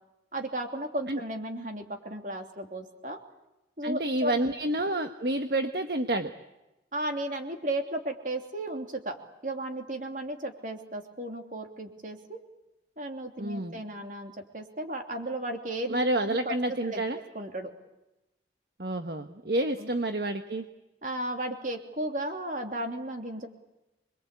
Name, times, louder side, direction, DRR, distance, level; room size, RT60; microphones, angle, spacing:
voice 1, 0.3-3.2 3.8-4.5 6.9-9.2 9.4-12.4 13.0-16.5 16.8-17.7 19.8-19.9 21.0-23.5, right 1 dB, 45° right, 4 dB, 3.1 m, -35 dB
voice 2, 3.8-6.3 13.4-13.8 15.9-17.2 18.8-20.7, right 1 dB, 60° right, 7 dB, 1.3 m, -29 dB
26.5 x 22.5 x 8.4 m, 0.97 s
head